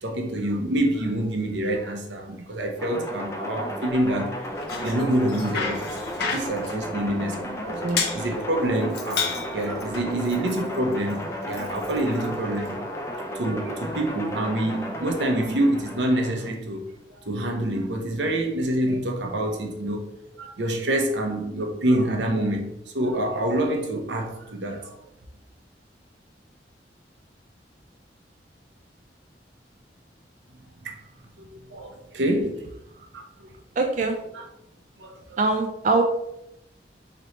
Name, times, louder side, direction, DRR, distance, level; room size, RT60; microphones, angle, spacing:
voice 1, 0.0-4.3 4.8-12.8 13.1-16.8 17.1-20.1 20.3-24.9 30.8-31.0 31.4-32.6 33.1-33.5 34.3-34.4 35.0-35.4, right 1 dB, 85° right, 0.7 m, -27 dB
sound 1, 2.8-16.5, equal, 15° left, 0.4 m, -34 dB
Bicycle, 4.4-12.8, left 5 dB, 65° left, 0.6 m, -34 dB
voice 2, 33.8-34.2 35.4-36.0, right 3 dB, 45° right, 0.4 m, -23 dB
3.0 x 3.0 x 4.1 m
head